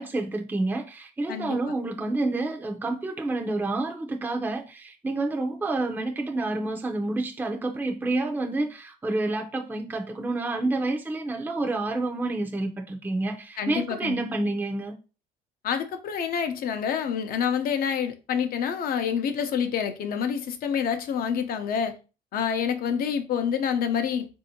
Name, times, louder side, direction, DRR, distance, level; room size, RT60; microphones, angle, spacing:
voice 1, 0.0-14.9, right 2 dB, 10° right, 0.5 m, -29 dB
voice 2, 13.6-14.5 15.6-21.9 22.3-24.3, left 7 dB, 60° left, 0.7 m, -27 dB
4.3 x 2.7 x 2.7 m
cardioid pair, 110°, 17 cm